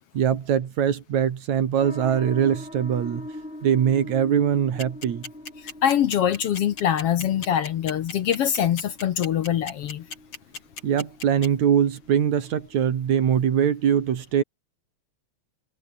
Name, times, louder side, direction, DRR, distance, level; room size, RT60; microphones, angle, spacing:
voice 1, 0.1-3.3 3.6-5.3 10.8-14.4, right 8 dB, 70° right, 3.3 m, -22 dB
sound 1, 1.8-12.9, left 1 dB, 15° left, 8.1 m, -43 dB
sound 2, 4.8-11.5, left 4 dB, 45° left, 4.8 m, -35 dB
voice 2, 5.8-10.1, left 10 dB, 65° left, 1.8 m, -23 dB
omnidirectional pair, 3.4 m